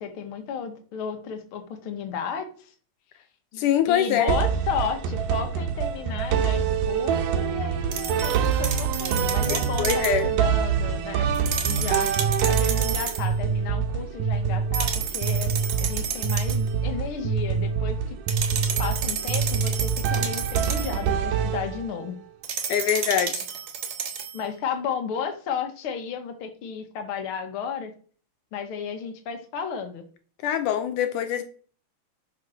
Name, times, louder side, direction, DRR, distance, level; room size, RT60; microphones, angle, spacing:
voice 1, 0.0-2.7 3.5-11.3 11.6-12.1 12.5-15.5 15.8-18.2 18.8-22.2 24.3-27.9 28.5-30.0, left 6 dB, 50° left, 6 dB, 2.1 m, -33 dB
voice 2, 3.6-4.4 9.5-10.3 22.7-23.4 30.4-31.4, left 9 dB, 75° left, 8 dB, 2.3 m, -24 dB
sound 1, 4.3-22.1, right 7 dB, 90° right, 2.7 m, -25 dB
sound 2, 7.9-10.2 11.3-13.3 14.7-16.7 18.3-21.0 22.4-24.4, right 8 dB, 60° right, 2.5 m, -31 dB
9.6 x 5.9 x 6.4 m, 0.42 s
omnidirectional pair, 3.7 m